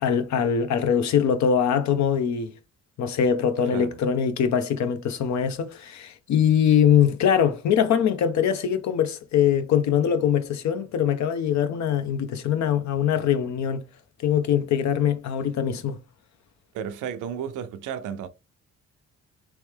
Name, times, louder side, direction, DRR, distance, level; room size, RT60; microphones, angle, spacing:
voice 1, 0.0-2.5 3.0-13.8 14.2-16.0, left 8 dB, 65° left, 0.7 m, -22 dB
voice 2, 16.7-18.3, right 8 dB, 80° right, 0.6 m, -33 dB
3.2 x 3.1 x 3.4 m
cardioid pair, 90°, 30 cm